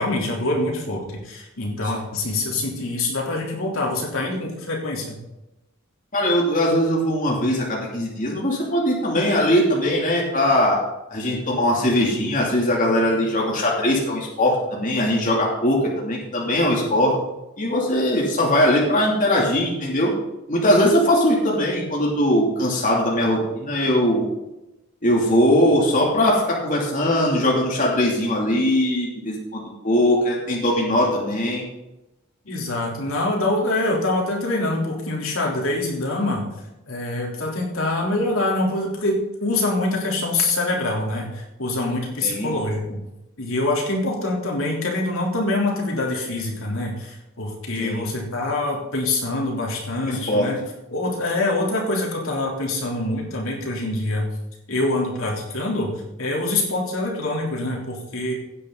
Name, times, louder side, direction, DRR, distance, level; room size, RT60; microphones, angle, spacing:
voice 1, 0.0-5.2 32.5-36.5 36.9-43.0 43.4-50.6 50.9-54.3 54.7-58.3, left 2 dB, 75° left, -2 dB, 3.6 m, -25 dB
voice 2, 6.1-10.8 11.1-17.1 17.6-20.1 20.5-24.3 25.0-31.6 42.2-42.6 47.8-48.0 50.0-50.5, left 1 dB, 40° left, -3 dB, 3.0 m, -20 dB
16.5 x 9.8 x 4.0 m, 0.94 s
head